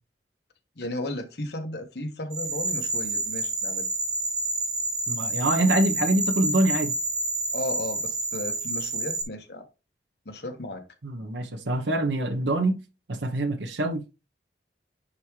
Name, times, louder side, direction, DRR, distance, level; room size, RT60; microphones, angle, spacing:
voice 1, 0.8-3.9 7.5-9.7 10.2-10.8, left 1 dB, 70° left, 1.3 m, -34 dB
sound 1, 2.3-9.2, right 2 dB, 20° right, 0.8 m, -29 dB
voice 2, 5.1-6.9 11.0-12.8 13.1-14.1, right 1 dB, 85° right, 1.0 m, -25 dB
10.0 x 3.6 x 3.2 m
head